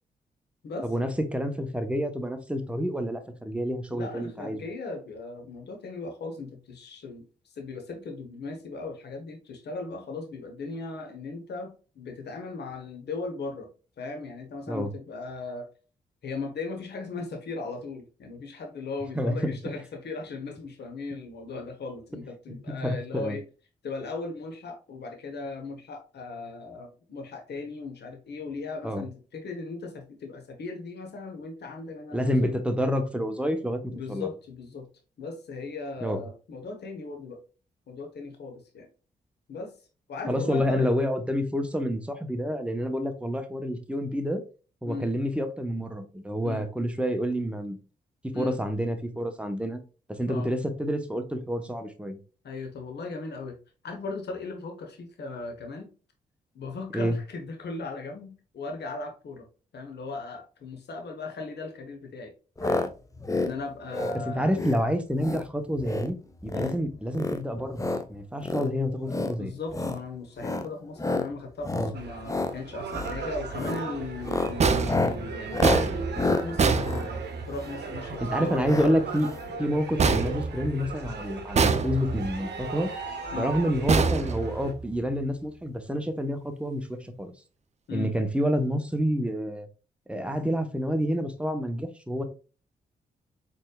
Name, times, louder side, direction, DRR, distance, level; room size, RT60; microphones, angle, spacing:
voice 1, 0.8-4.6 14.7-14.9 19.1-19.6 22.5-23.4 28.8-29.0 32.1-34.3 36.0-36.2 40.3-44.4 44.8-47.8 48.2-49.8 50.1-52.2 56.9-57.2 64.2-66.2 66.4-67.8 68.1-69.5 71.7-71.9 78.2-79.3 79.6-82.9 83.3-87.3 87.9-89.7 90.1-92.2, equal, 5° right, 0.9 m, -28 dB
voice 2, 3.9-7.2 7.5-13.7 14.0-15.7 16.2-23.5 23.8-32.5 33.9-34.9 35.2-37.4 37.9-38.9 39.5-39.7 40.1-40.9 44.9-45.1 46.4-46.7 48.3-48.6 50.3-50.5 52.4-53.6 53.8-55.9 56.5-59.5 59.7-62.3 62.6-62.9 63.4-64.5 66.5-66.8 69.4-78.9 83.3-83.5 87.9-88.1, left 3 dB, 65° left, 1.1 m, -37 dB
sound 1, 62.6-62.9 63.2-63.5 63.9-64.2 64.5-64.8 65.2-65.5 65.8-66.1 66.4-66.8 67.1-68.0 68.4-68.7 69.1-69.3 69.7-70.0 70.4-70.7 71.0-71.3 71.6-71.9 72.2-72.5 72.9-73.2 73.5-73.8 74.2-77.9 78.6-78.9 79.2-79.3 79.5-79.6, left 2 dB, 15° left, 0.6 m, -29 dB
sound 2, 71.9-84.7, right 4 dB, 65° right, 0.8 m, -37 dB
sound 3, 74.6-77.6 80.0-81.1 81.5-82.4 83.9-85.0, right 4 dB, 35° right, 0.5 m, -25 dB
4.2 x 3.4 x 2.3 m
supercardioid pair, 45°, 19 cm